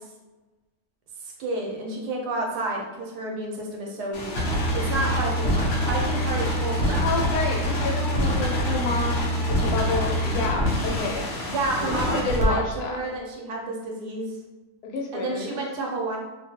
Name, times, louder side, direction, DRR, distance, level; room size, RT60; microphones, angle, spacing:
voice 1, 1.2-4.3 4.7-7.1 11.5-14.3 15.1-16.2, right 2 dB, 85° right, -1 dB, 1.2 m, -30 dB
sound 1, 4.1-12.4, equal, 60° left, 0.7 m, -25 dB
voice 2, 7.0-11.3 12.1-13.0 14.8-15.6, left 4 dB, 80° left, 1 dB, 1.1 m, -29 dB
2.7 x 2.2 x 2.7 m, 1.1 s
omnidirectional pair, 1.7 m